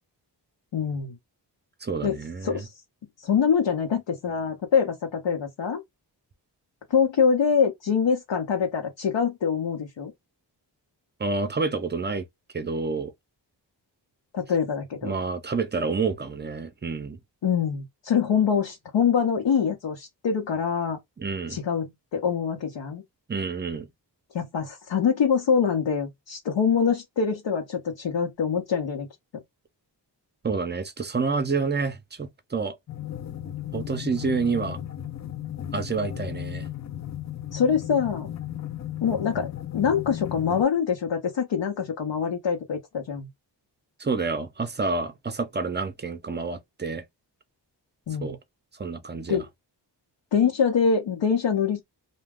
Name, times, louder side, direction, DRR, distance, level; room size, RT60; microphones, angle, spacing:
voice 1, 0.7-1.2 2.0-2.2 2.4-2.7 3.2-5.8 6.9-10.1 14.3-15.1 17.4-21.0 21.5-23.0 24.3-29.1 29.3-29.4 37.5-38.3 39.0-43.3 48.1-48.4 49.3-49.5 50.3-51.8, left 6 dB, 85° left, 0.8 m, -24 dB
voice 2, 1.8-2.6 11.2-12.2 12.5-13.1 15.0-17.2 21.2-21.6 23.3-23.9 30.4-32.8 33.7-34.8 35.7-36.7 44.0-47.0 48.2-48.4 48.8-49.4, right 4 dB, 25° right, 0.5 m, -28 dB
sound 1, 32.9-40.6, left 11 dB, 45° left, 0.4 m, -35 dB
2.3 x 2.1 x 3.4 m
wide cardioid pair, 100°, 43 cm